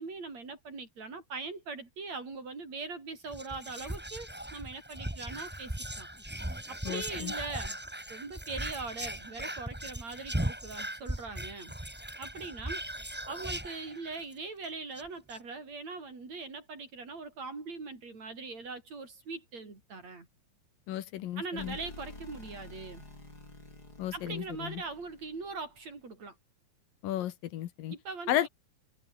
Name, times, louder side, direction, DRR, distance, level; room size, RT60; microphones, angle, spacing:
voice 1, 0.0-6.1 6.7-7.8 8.1-11.7 12.2-20.3 21.4-23.1 24.1-26.4 27.9-28.5, right 4 dB, 50° right, 6.8 m, -41 dB
Whispering, 3.3-14.3 14.6-14.7 15.0-15.4, right 1 dB, 5° right, 0.8 m, -38 dB
voice 2, 6.8-7.3 20.9-21.8 24.0-24.8 27.0-27.9 28.3-28.5, left 12 dB, 80° left, 3.0 m, -33 dB
sound 1, 21.6-25.8, left 2 dB, 25° left, 8.5 m, -49 dB
omnidirectional pair, 4.0 m